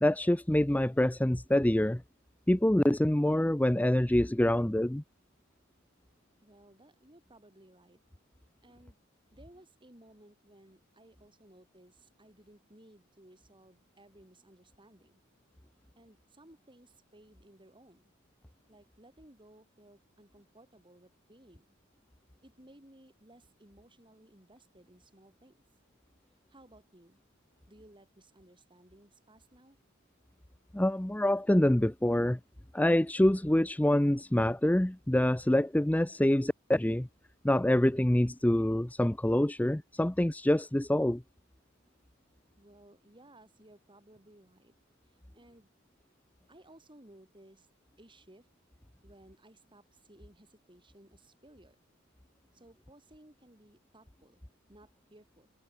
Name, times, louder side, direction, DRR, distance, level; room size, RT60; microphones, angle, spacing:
voice 1, 0.0-2.0 2.5-5.0 30.7-32.4 32.7-37.1 37.4-41.2, left 1 dB, 10° left, 0.6 m, -26 dB
voice 2, 6.4-8.0 8.6-9.0 9.3-15.2 16.0-18.1 18.7-21.8 22.4-25.6 26.5-27.2 27.7-29.8 42.6-44.7 45.1-45.7 46.5-47.7 48.0-48.5 49.0-51.8 52.5-54.4 54.7-55.5, right 1 dB, 25° right, 7.5 m, -59 dB
head